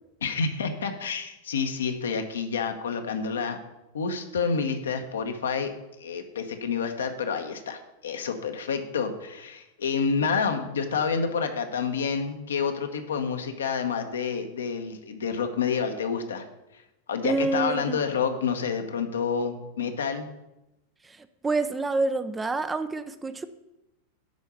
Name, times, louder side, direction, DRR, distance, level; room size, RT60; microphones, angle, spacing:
voice 1, 0.2-3.6 3.9-5.7 6.0-16.5 16.7-16.8 17.1-20.3, left 5 dB, 65° left, 6 dB, 1.0 m, -28 dB
voice 2, 17.2-18.0 21.4-23.4, right 3 dB, 15° right, 11 dB, 0.5 m, -27 dB
10.5 x 4.5 x 6.8 m, 0.94 s
figure-of-eight pair, 90°, 0 cm